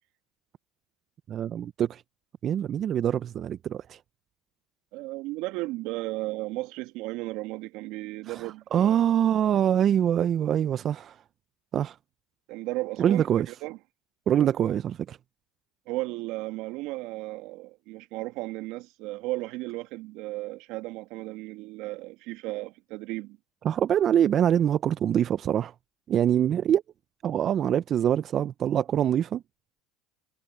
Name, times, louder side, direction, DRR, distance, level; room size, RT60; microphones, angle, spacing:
voice 1, 1.3-2.0 2.4-4.0 8.3-11.2 11.7-12.0 13.0-13.5 14.3-15.2 23.6-25.7 26.1-26.8 27.2-29.4, right 10 dB, 45° right, 0.6 m, -24 dB
voice 2, 4.9-9.0 12.5-13.8 14.4-14.7 15.9-23.4, right 20 dB, 65° right, 2.1 m, -35 dB
supercardioid pair, 90°, 0 cm